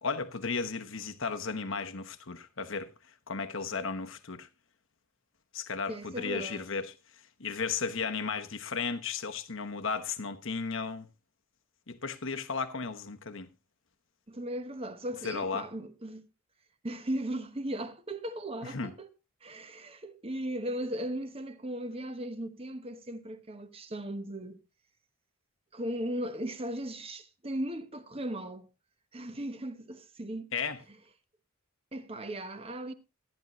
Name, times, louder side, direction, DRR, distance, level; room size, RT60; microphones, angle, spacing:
voice 1, 0.0-2.9 3.3-4.5 5.5-6.9 7.4-11.1 11.9-13.5 15.2-15.7 18.6-18.9 30.5-30.8, left 5 dB, 60° left, 1.1 m, -34 dB
voice 2, 5.9-6.6 14.3-16.3 16.8-19.1 19.4-24.6 25.7-28.7 29.1-30.5 31.9-32.9, right 1 dB, 25° right, 1.0 m, -37 dB
13.5 x 11.0 x 3.1 m
head